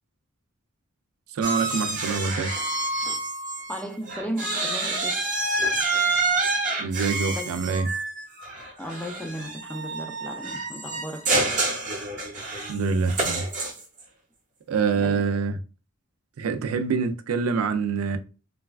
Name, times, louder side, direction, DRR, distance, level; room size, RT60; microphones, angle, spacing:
voice 1, 1.3-2.5 6.8-7.9 12.7-13.5 14.7-15.6 16.4-18.2, right 5 dB, 85° right, 0.4 m, -25 dB
sound 1, 1.4-3.8 4.1-14.0, right 2 dB, 35° right, 0.8 m, -28 dB
voice 2, 3.7-5.1 7.4-7.5 8.8-11.4 15.0-15.2, equal, 5° left, 0.4 m, -35 dB
3.2 x 2.3 x 2.3 m
head